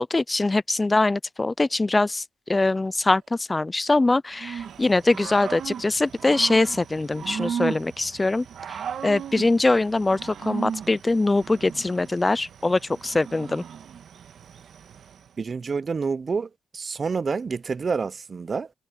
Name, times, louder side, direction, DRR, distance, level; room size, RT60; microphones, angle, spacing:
voice 1, 0.0-2.2 2.5-8.4 9.0-13.6, left 2 dB, 20° left, 0.4 m, -22 dB
sound 1, 2.6-3.5 4.3-5.1 6.0-6.9 8.2-9.0, right 11 dB, 75° right, 6.6 m, -56 dB
Growling / Cricket, 4.4-15.3, right 8 dB, 60° right, 1.9 m, -36 dB
voice 2, 15.4-18.7, right 5 dB, 35° right, 0.5 m, -28 dB
cardioid pair, 90°, 0 cm